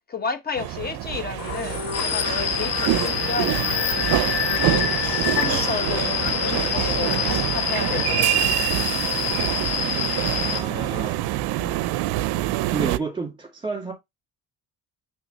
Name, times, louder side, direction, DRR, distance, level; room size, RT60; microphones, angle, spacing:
voice 1, 0.1-3.8 5.3-8.4 11.6-11.8, left 5 dB, 25° left, 0.9 m, -32 dB
sound 1, 0.6-13.0, right 15 dB, 80° right, 0.5 m, -26 dB
sound 2, 1.4-10.0, left 7 dB, 70° left, 1.4 m, -31 dB
sound 3, 1.9-10.6, left 7 dB, 40° left, 1.3 m, -27 dB
voice 2, 10.2-11.3 12.7-13.9, right 4 dB, 15° right, 2.0 m, -31 dB
6.0 x 3.2 x 5.5 m
cardioid pair, 165°, 37 cm